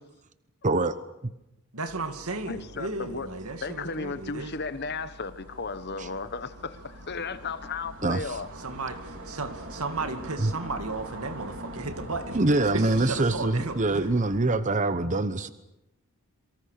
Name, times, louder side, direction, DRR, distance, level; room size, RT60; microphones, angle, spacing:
voice 1, 0.6-1.0 1.2-1.3 6.0-6.1 8.0-8.4 10.4-10.5 12.3-15.5, right 2 dB, 35° right, 12 dB, 0.9 m, -24 dB
voice 2, 1.7-4.5 8.6-12.4 12.7-14.1, right 3 dB, 75° right, 7 dB, 2.3 m, -34 dB
sound 1, 1.9-14.4, right 1 dB, 60° right, 4.4 m, -43 dB
voice 3, 2.5-3.3 3.6-8.5, left 4 dB, 50° left, 12 dB, 1.2 m, -35 dB
27.0 x 24.5 x 6.7 m, 0.92 s
head